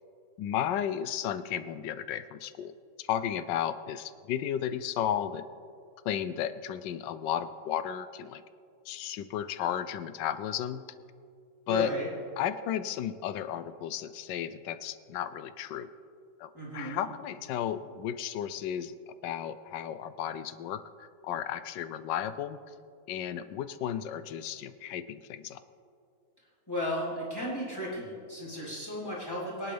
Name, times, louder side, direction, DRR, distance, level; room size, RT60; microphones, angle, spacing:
voice 1, 0.4-5.4 6.0-8.4 8.9-10.8 11.7-11.9 12.4-15.9 16.4-18.9 19.2-22.6 23.1-25.6, left 10 dB, 80° left, 13 dB, 1.3 m, -34 dB
voice 2, 11.7-12.1 16.5-17.0 26.7-29.7, equal, 10° left, -8 dB, 3.9 m, -34 dB
23.0 x 10.5 x 3.4 m, 2.4 s
omnidirectional pair, 1.9 m